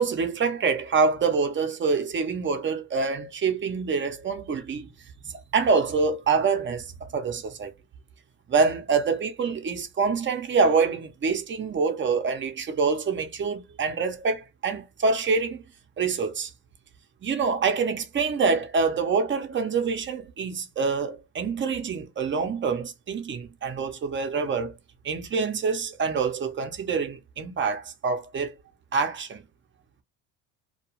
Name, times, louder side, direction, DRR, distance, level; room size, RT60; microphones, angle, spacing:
voice 1, 0.0-4.9 5.2-7.7 8.5-15.6 16.0-16.5 17.2-24.7 25.0-28.5 28.9-29.4, right 5 dB, 30° right, 0.7 m, -26 dB
2.3 x 2.3 x 3.0 m
supercardioid pair, 95°, 39 cm